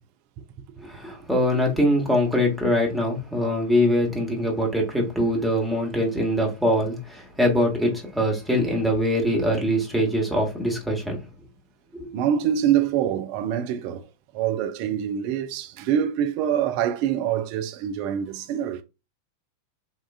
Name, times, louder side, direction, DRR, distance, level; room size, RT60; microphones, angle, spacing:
voice 1, 0.8-11.2 11.9-12.1, equal, ahead, 1.1 m, -23 dB
voice 2, 12.1-14.1 14.3-18.8, right 9 dB, 45° right, 0.4 m, -25 dB
3.7 x 2.4 x 2.3 m
figure-of-eight pair, 90°, 0 cm